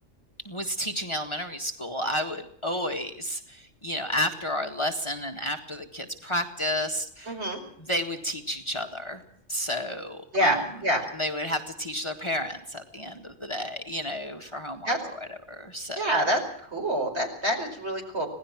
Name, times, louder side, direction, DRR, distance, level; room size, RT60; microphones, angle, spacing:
voice 1, 0.5-7.4 7.8-9.2 9.5-10.7 11.1-16.0, equal, 25° left, 5 dB, 1.8 m, -31 dB
voice 2, 7.3-7.6 10.3-11.0 14.9-15.0 16.0-16.4 16.7-18.3, right 1 dB, 60° right, 2 dB, 5.3 m, -26 dB
26.0 x 18.0 x 6.1 m, 0.66 s
omnidirectional pair, 1.3 m